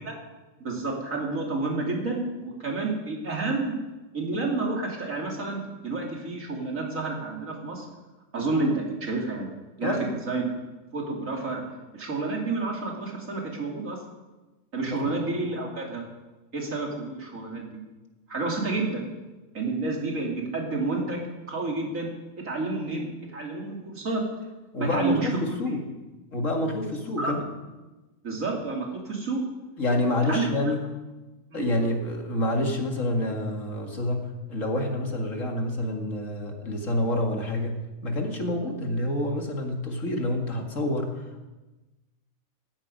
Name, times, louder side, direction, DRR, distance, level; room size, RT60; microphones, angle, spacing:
voice 1, 0.6-3.7 4.1-7.8 8.3-9.5 9.8-10.5 10.9-11.6 11.9-14.0 14.7-16.0 16.5-17.8 18.3-19.0 19.5-22.1 22.4-23.1 23.3-24.2 24.8-25.3 27.2-27.3 28.2-29.4 30.3-30.5 31.5-31.7, right 3 dB, 80° right, 0 dB, 3.3 m, -29 dB
voice 2, 9.8-10.1 14.8-15.2 24.7-25.9 26.3-27.4 29.8-30.9 31.5-41.5, left 1 dB, 70° left, 3 dB, 2.5 m, -28 dB
16.5 x 14.0 x 5.4 m, 1.1 s
omnidirectional pair, 1.4 m